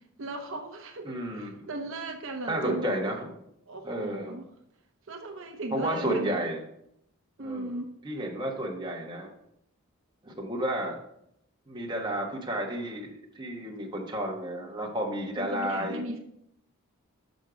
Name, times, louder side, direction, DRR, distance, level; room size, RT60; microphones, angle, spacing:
voice 1, 0.2-2.9 3.7-4.5 5.1-6.3 7.4-7.9 15.4-16.2, right 2 dB, 65° right, 4 dB, 0.8 m, -37 dB
voice 2, 1.0-1.5 2.5-3.3 3.8-4.3 5.7-6.6 7.4-7.8 8.0-9.3 10.2-11.0 11.7-16.0, right 1 dB, 20° right, -2 dB, 1.2 m, -32 dB
6.3 x 5.3 x 4.9 m, 0.75 s
head